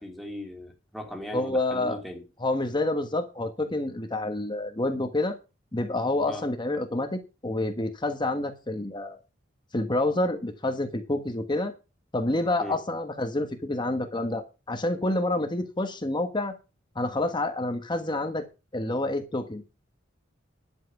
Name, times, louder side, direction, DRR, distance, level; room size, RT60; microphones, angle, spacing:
voice 1, 0.0-2.2 6.3-6.5 12.6-12.8, left 1 dB, ahead, 2.8 m, -38 dB
voice 2, 1.3-2.0 2.4-5.4 5.7-9.2 9.7-11.7 12.1-16.5 16.9-18.4 18.7-19.6, left 2 dB, 25° left, 1.2 m, -28 dB
11.5 x 7.6 x 5.8 m
head